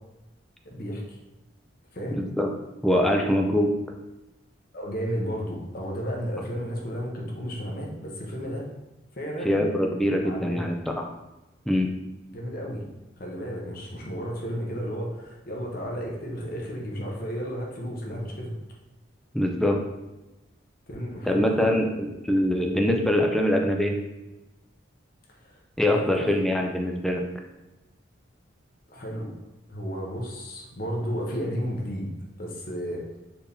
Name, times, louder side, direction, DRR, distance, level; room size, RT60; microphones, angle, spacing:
voice 1, 0.6-1.2 1.9-2.2 4.7-8.7 9.1-9.6 10.2-10.7 12.3-12.8 13.2-18.5 20.9-21.6 25.4-26.4 28.9-29.3 29.7-32.1 32.4-33.0, equal, 45° left, -1 dB, 0.8 m, -33 dB
voice 2, 2.1-2.5 2.8-3.7 9.4-11.0 11.7-11.9 19.3-19.8 21.3-24.0 25.8-27.3, left 1 dB, ahead, 1 dB, 0.3 m, -23 dB
4.4 x 3.4 x 2.6 m, 1.0 s
head